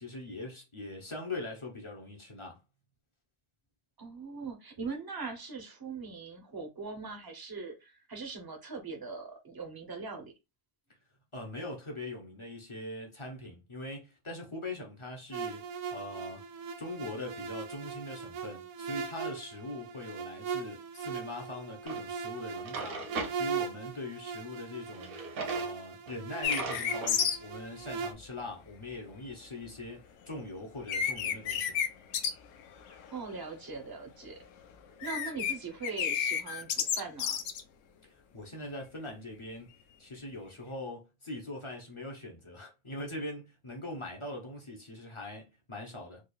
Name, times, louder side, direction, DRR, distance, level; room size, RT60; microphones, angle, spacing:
voice 1, 0.0-2.6 11.3-16.4 16.8-23.0 23.3-25.2 25.5-31.7 38.0-39.7 40.0-46.2, left 2 dB, 30° left, 0.6 m, -42 dB
voice 2, 4.0-10.3 32.9-34.4 35.0-37.4, right 4 dB, 25° right, 0.5 m, -41 dB
sound 1, 15.3-28.1, right 6 dB, 90° right, 1.2 m, -39 dB
Drawer open or close, 21.9-22.0 22.5-23.4 24.9-25.7 26.1-26.2 26.4-27.1, right 3 dB, 70° right, 1.4 m, -38 dB
sound 2, 26.4-27.4 30.4-30.5 30.9-32.3 32.6-33.2 33.5-33.7 34.8-35.5 35.8-37.6, left 8 dB, 65° left, 0.8 m, -31 dB
4.6 x 2.4 x 2.3 m
omnidirectional pair, 1.6 m